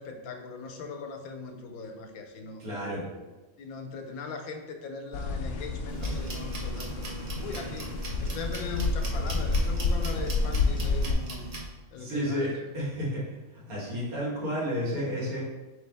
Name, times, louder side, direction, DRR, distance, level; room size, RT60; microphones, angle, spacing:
voice 1, 0.0-2.6 3.1-3.3 3.6-7.1 7.4-11.5 11.9-12.7, left 4 dB, 85° left, 4 dB, 1.1 m, -40 dB
voice 2, 2.6-3.0 12.0-13.4 13.7-15.4, equal, 80° right, -6 dB, 1.9 m, -31 dB
sound 1, 5.1-11.2, left 3 dB, 65° left, 0.8 m, -29 dB
sound 2, 5.9-11.7, right 1 dB, 55° right, 0.4 m, -38 dB
4.4 x 3.4 x 3.3 m, 1.2 s
omnidirectional pair, 1.5 m